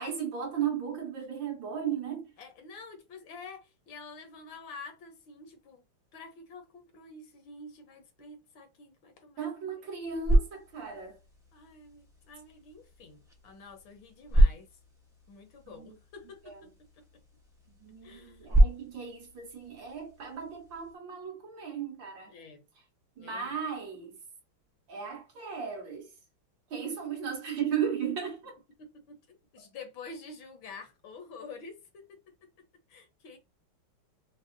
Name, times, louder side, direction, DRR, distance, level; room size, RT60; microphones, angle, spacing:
voice 1, 0.0-2.3 9.4-11.2 15.7-16.0 17.8-22.3 23.2-24.2 24.9-26.1 26.7-28.6, right 7 dB, 65° right, 1.8 m, -35 dB
voice 2, 2.4-5.8 6.1-10.1 11.5-14.7 15.3-16.7 18.0-18.6 22.3-22.6 23.2-23.5 28.8-32.2 32.9-33.4, left 4 dB, 70° left, 1.6 m, -48 dB
sound 1, 9.9-21.0, right 1 dB, 5° right, 0.3 m, -30 dB
5.2 x 2.0 x 2.6 m
omnidirectional pair, 2.3 m